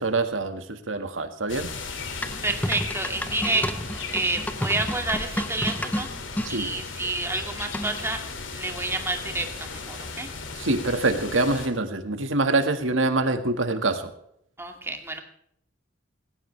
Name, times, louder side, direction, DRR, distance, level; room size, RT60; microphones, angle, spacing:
voice 1, 0.0-1.7 6.5-6.7 10.6-14.1, right 2 dB, 85° right, 8 dB, 1.8 m, -25 dB
sound 1, 1.5-11.7, left 4 dB, 75° left, 2.6 m, -36 dB
sound 2, 2.2-6.5 7.7-8.2, equal, 10° left, 0.9 m, -31 dB
voice 2, 2.4-3.7 4.1-6.1 6.5-10.3 14.6-15.2, right 2 dB, 15° right, 4 dB, 2.2 m, -29 dB
18.5 x 16.5 x 3.4 m, 0.71 s
head